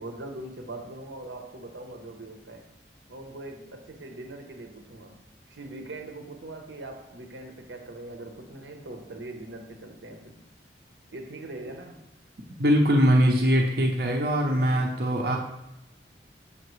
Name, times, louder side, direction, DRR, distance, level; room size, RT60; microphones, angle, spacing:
voice 1, 0.0-2.7 3.1-5.2 5.5-10.4 11.1-12.1 14.5-15.4, right 2 dB, 85° right, 5 dB, 0.9 m, -41 dB
voice 2, 12.6-15.4, equal, 55° right, 0 dB, 0.7 m, -22 dB
6.7 x 5.8 x 3.1 m, 0.87 s
head